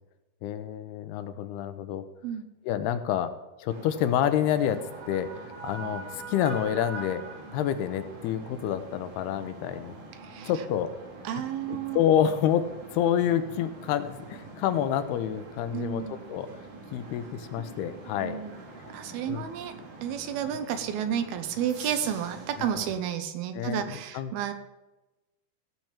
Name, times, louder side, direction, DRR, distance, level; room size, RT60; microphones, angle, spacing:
voice 1, 0.4-2.0 2.6-3.3 3.6-4.8 5.1-5.3 5.6-7.2 7.5-10.0 10.4-10.9 11.7-12.6 12.9-16.5 16.9-18.4 19.3-19.5 22.6-22.8 23.5-24.3, left 10 dB, 85° left, 10 dB, 2.9 m, -28 dB
sound 1, 3.7-23.0, right 3 dB, 55° right, 3.6 m, -44 dB
voice 2, 10.2-10.5 11.2-12.0 15.7-16.2 18.2-18.6 18.9-19.7 20.0-24.5, right 9 dB, 75° right, 9 dB, 2.8 m, -31 dB
17.0 x 6.0 x 7.4 m, 1.0 s
omnidirectional pair, 4.5 m